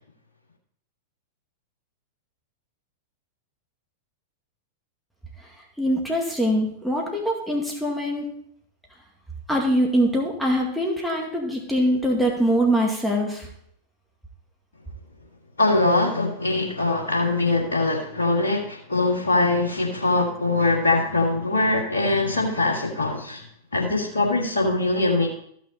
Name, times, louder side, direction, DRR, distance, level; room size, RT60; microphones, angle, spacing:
voice 1, 5.8-8.3 9.5-13.5, equal, ahead, -2 dB, 2.1 m, -23 dB
voice 2, 15.6-23.4 23.7-25.3, left 2 dB, 80° left, -1 dB, 1.9 m, -22 dB
14.0 x 6.1 x 4.1 m, 0.65 s
hypercardioid pair, 100°, 0 cm